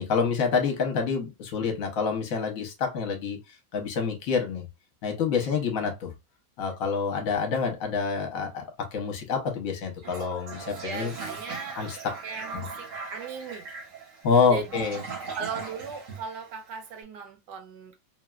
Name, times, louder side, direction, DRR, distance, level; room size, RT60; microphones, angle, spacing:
voice 1, 0.0-3.4 3.7-4.7 5.0-6.1 6.6-11.1 11.8-12.0 12.5-12.6 14.2-15.0, left 5 dB, 55° left, 1.1 m, -27 dB
Toilet flush, 10.0-16.9, right 4 dB, 55° right, 1.0 m, -39 dB
voice 2, 10.8-13.7 14.5-14.7 15.3-18.0, right 6 dB, 75° right, 1.2 m, -38 dB
3.2 x 2.3 x 2.3 m
omnidirectional pair, 1.9 m